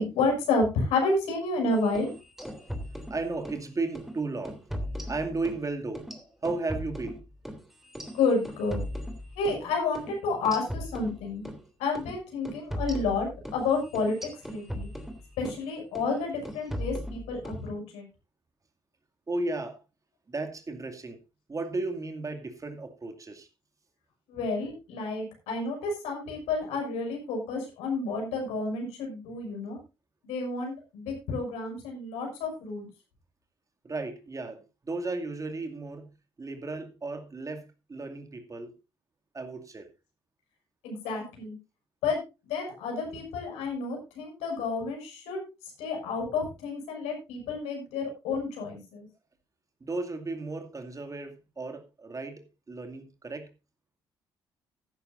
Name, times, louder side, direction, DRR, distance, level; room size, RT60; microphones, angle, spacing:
voice 1, 0.0-2.1 8.1-8.8 9.3-11.4 11.8-14.9 15.4-18.1 24.3-29.8 30.2-32.9 40.8-41.6 42.0-45.4 45.8-49.1, left 3 dB, 65° left, 6.2 m, -30 dB
sound 1, 1.8-3.6 4.0-4.1 4.5-5.6 6.0-9.6 10.0-10.1 10.5-11.6 12.0-12.1 12.5-15.6 16.0-16.2 16.5-17.6, equal, 5° right, 3.1 m, -38 dB
voice 2, 3.1-4.6 5.1-6.1 6.4-7.2 19.3-19.8 20.3-21.2 21.5-23.5 33.8-36.1 36.4-38.7 39.3-39.9 49.8-53.5, right 3 dB, 30° right, 2.4 m, -34 dB
15.0 x 12.5 x 2.6 m
figure-of-eight pair, 45°, 12 cm